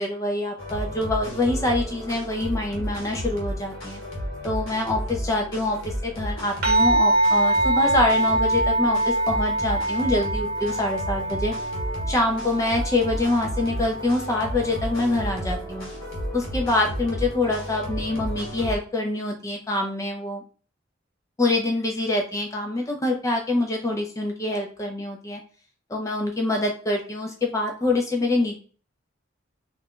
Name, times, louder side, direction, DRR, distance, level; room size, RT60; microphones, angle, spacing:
voice 1, 0.0-4.0 4.4-11.5 12.1-15.9 16.3-20.4 21.4-25.4 25.9-28.6, left 2 dB, 15° left, 2 dB, 0.4 m, -25 dB
sound 1, 0.6-18.8, equal, 90° left, 1.1 m, -32 dB
sound 2, 6.6-15.3, right 1 dB, 50° right, 1.0 m, -24 dB
2.4 x 2.1 x 3.5 m, 0.40 s
head